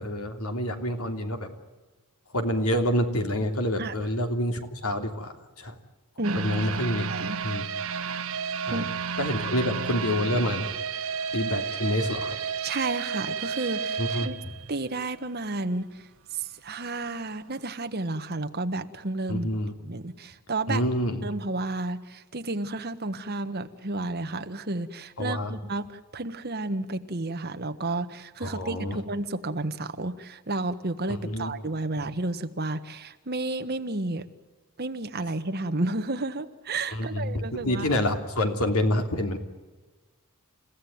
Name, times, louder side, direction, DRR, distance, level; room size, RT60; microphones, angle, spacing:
voice 1, 0.0-1.5 2.3-5.7 6.3-7.1 7.4-7.7 8.7-8.8 9.2-10.7 11.3-12.4 14.0-14.3 19.3-19.7 20.7-21.3 25.2-25.5 28.4-29.0 31.1-31.5 36.9-39.4, left 1 dB, 75° left, 6 dB, 3.1 m, -27 dB
voice 2, 6.2-6.8 7.1-7.4 8.7-8.8 12.6-14.4 14.7-19.5 19.8-20.8 21.2-34.2 34.8-37.9, right 2 dB, 45° right, 8 dB, 1.5 m, -32 dB
sound 1, 6.2-15.2 15.6-15.7 16.2-16.3, right 6 dB, 65° right, 1.3 m, -32 dB
29.5 x 16.0 x 9.5 m, 1.2 s
head